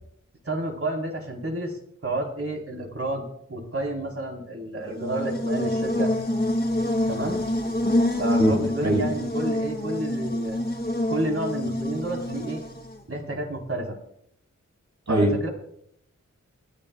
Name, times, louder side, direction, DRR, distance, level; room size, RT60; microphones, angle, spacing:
voice 1, 0.4-3.2 3.5-6.1 7.1-7.4 8.2-10.6 11.1-12.6 13.1-14.0 15.1-15.5, right 1 dB, 50° right, 0 dB, 4.2 m, -30 dB
Buzz, 4.9-13.0, left 1 dB, 30° left, 2.3 m, -26 dB
voice 2, 8.4-9.0 15.1-15.3, right 1 dB, 65° right, 0 dB, 6.2 m, -22 dB
28.5 x 10.5 x 2.4 m, 0.71 s
wide cardioid pair, 60°, 30 cm